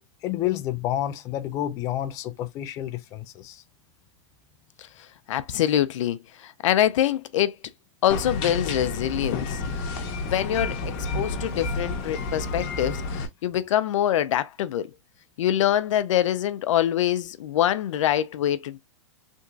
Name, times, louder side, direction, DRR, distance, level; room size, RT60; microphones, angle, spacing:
voice 1, 0.2-3.6, left 12 dB, 20° left, 0.3 m, -29 dB
voice 2, 5.3-7.6 8.0-9.9 10.2-14.9 15.4-18.8, left 11 dB, 70° left, 0.5 m, -25 dB
sound 1, 8.1-13.3, left 3 dB, 35° left, 0.9 m, -30 dB
3.6 x 2.9 x 2.6 m
supercardioid pair, 160°, 16 cm